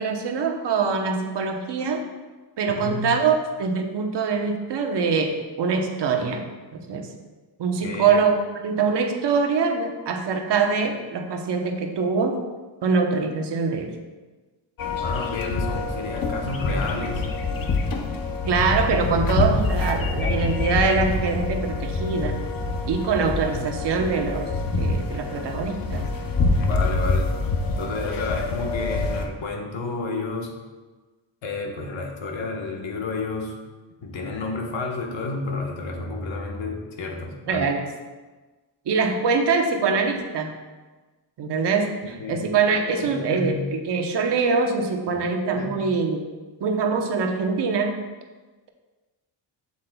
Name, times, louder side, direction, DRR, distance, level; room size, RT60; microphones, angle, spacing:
voice 1, 0.0-2.0 2.6-6.4 6.7-7.1 7.6-8.4 8.6-12.4 12.8-13.9 18.5-22.4 22.9-24.5 24.8-26.1 37.5-37.9 38.9-40.6 41.4-46.2 46.6-48.0, right 5 dB, 60° right, 3 dB, 1.0 m, -23 dB
voice 2, 2.7-3.2 7.8-8.2 15.0-17.2 23.5-23.7 26.6-27.4 27.8-30.5 31.4-33.5 34.0-37.7 42.2-42.5 43.0-43.6 45.1-45.2 45.6-45.8, left 3 dB, 70° left, 1 dB, 1.4 m, -31 dB
sound 1, 14.8-29.3, left 3 dB, 45° left, 0.8 m, -26 dB
7.7 x 7.4 x 2.3 m, 1.3 s
cardioid pair, 105°, 47 cm